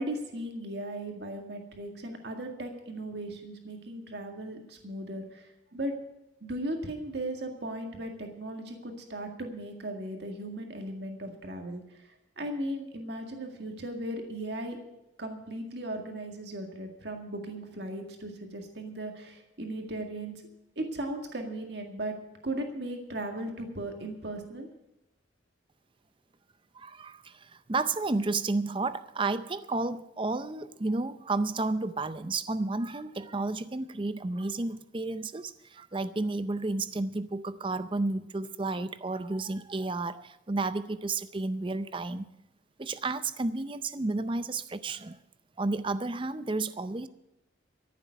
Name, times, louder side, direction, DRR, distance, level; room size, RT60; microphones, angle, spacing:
voice 1, 0.0-5.9 6.4-11.8 12.4-14.8 15.2-20.3 20.8-22.2 22.4-24.7, right 1 dB, 60° right, 3 dB, 1.9 m, -37 dB
voice 2, 26.7-42.3 42.8-45.2 45.6-47.1, right 3 dB, 25° right, 13 dB, 0.5 m, -32 dB
14.0 x 7.3 x 9.4 m, 0.89 s
head